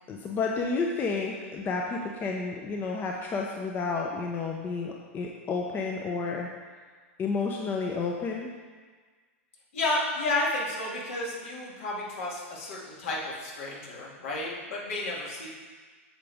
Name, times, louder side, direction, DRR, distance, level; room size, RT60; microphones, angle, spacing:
voice 1, 0.1-6.5 7.2-8.5, left 4 dB, 25° left, 0 dB, 0.8 m, -31 dB
voice 2, 9.7-15.5, left 2 dB, 65° left, -4 dB, 2.4 m, -31 dB
8.8 x 6.8 x 3.6 m, 1.5 s
hypercardioid pair, 115°, 7 cm